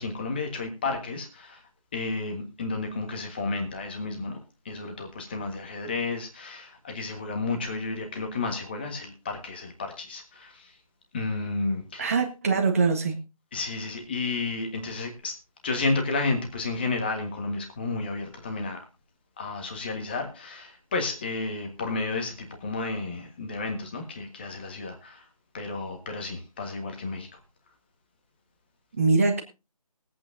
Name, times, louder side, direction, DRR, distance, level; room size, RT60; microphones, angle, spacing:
voice 1, 0.0-1.6 1.9-4.4 4.6-10.7 11.1-12.1 13.5-15.3 15.6-18.8 19.4-25.2 25.5-27.4, left 3 dB, 15° left, 1.6 m, -32 dB
voice 2, 12.0-13.1 29.0-29.4, right 4 dB, 25° right, 1.5 m, -23 dB
22.5 x 8.6 x 2.7 m
figure-of-eight pair, 170°, 20 cm